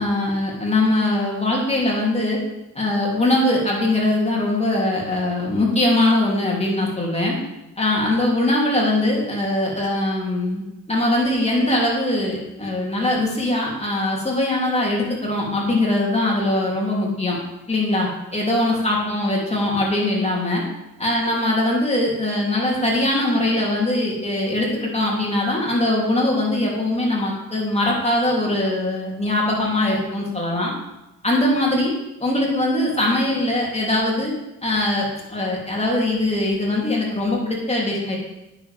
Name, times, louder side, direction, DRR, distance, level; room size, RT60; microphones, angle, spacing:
voice 1, 0.0-2.4 2.7-7.4 7.8-17.4 17.7-20.6 21.0-30.7 31.2-31.9 32.2-34.3 34.6-38.2, left 1 dB, 20° left, -3 dB, 2.9 m, -21 dB
9.1 x 6.7 x 3.5 m, 0.98 s
supercardioid pair, 60°, 34 cm